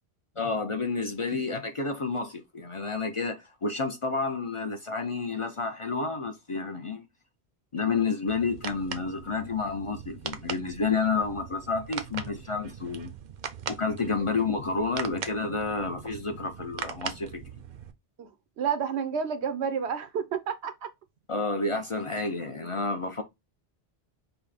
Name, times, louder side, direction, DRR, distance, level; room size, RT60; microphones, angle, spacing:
voice 1, 0.4-7.0 7.7-13.1 13.7-17.4 21.3-23.2, left 4 dB, 40° left, 0.5 m, -30 dB
sound 1, 8.3-17.9, right 7 dB, 55° right, 0.6 m, -40 dB
voice 2, 18.6-20.9, right 7 dB, 85° right, 1.0 m, -30 dB
5.4 x 2.1 x 4.1 m
omnidirectional pair, 1.1 m